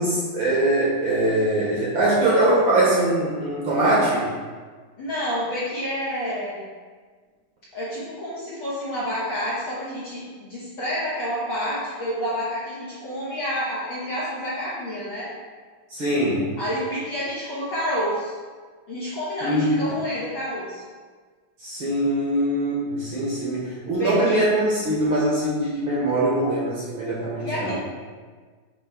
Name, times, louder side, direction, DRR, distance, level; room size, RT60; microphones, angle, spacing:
voice 1, 0.0-4.3 15.9-16.5 19.4-19.7 21.6-27.8, right 1 dB, 50° right, -7 dB, 1.7 m, -22 dB
voice 2, 5.0-6.7 7.7-15.3 16.6-18.3 18.9-20.8 24.0-24.4 27.4-27.8, equal, 60° left, -9 dB, 1.4 m, -29 dB
7.3 x 3.0 x 4.5 m, 1.5 s
omnidirectional pair, 3.4 m